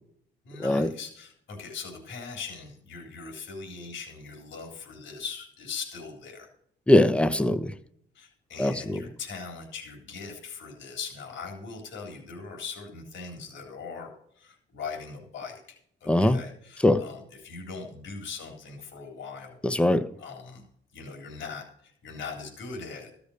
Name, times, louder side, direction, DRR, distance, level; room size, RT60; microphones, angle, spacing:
voice 1, 0.5-6.5 8.2-14.1 14.4-19.6 20.2-20.6 20.9-23.1, left 5 dB, 70° left, 1 dB, 3.8 m, -40 dB
voice 2, 6.9-7.7 8.6-9.0 16.1-16.4 16.8-17.0 19.6-20.1, left 1 dB, 5° left, 11 dB, 0.9 m, -21 dB
14.0 x 6.9 x 6.5 m, 0.66 s
cardioid pair, 90°, 20 cm